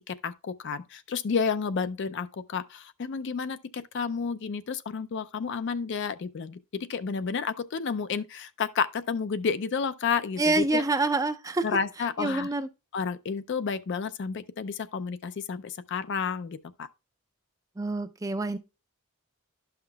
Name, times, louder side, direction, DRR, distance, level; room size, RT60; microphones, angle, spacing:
voice 1, 0.0-10.8 11.6-12.5 12.9-16.9, left 5 dB, 55° left, 0.4 m, -31 dB
voice 2, 10.4-11.7 12.2-12.7 17.8-18.6, right 2 dB, 15° right, 0.4 m, -26 dB
12.0 x 5.7 x 2.2 m
head